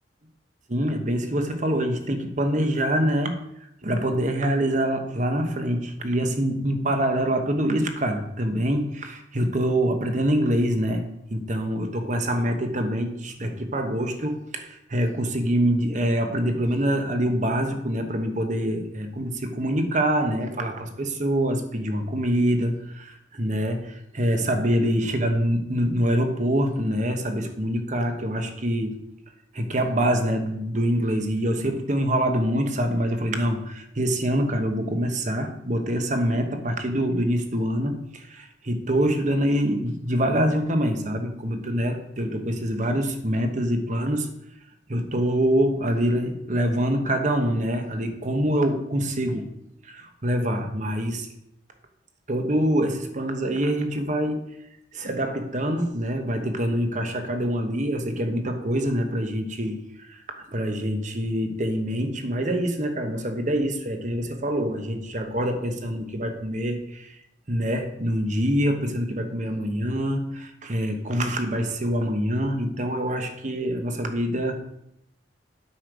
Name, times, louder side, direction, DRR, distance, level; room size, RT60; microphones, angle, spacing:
voice 1, 0.7-3.4 3.8-11.0 11.3-29.0 29.5-44.3 44.9-49.5 49.8-51.3 52.3-54.4 54.9-67.2 67.5-74.6, equal, 45° right, 6 dB, 1.2 m, -25 dB
8.5 x 6.5 x 5.1 m, 0.79 s
head